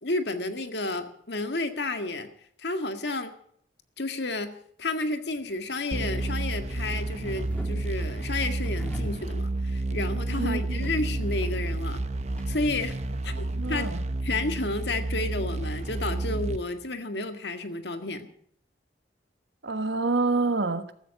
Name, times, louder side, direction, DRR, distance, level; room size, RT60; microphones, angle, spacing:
voice 1, 0.0-2.3 2.6-3.3 4.0-12.0 12.5-13.0 13.2-13.3 13.7-13.9 14.2-18.3, left 2 dB, 70° left, 1.9 m, -31 dB
sound 1, 5.2-16.3, equal, 10° left, 3.6 m, -46 dB
sound 2, 5.9-16.6, right 2 dB, 40° right, 1.0 m, -30 dB
voice 2, 10.4-10.9 13.6-14.0 19.6-20.9, right 3 dB, 75° right, 1.4 m, -27 dB
15.0 x 14.0 x 6.5 m
head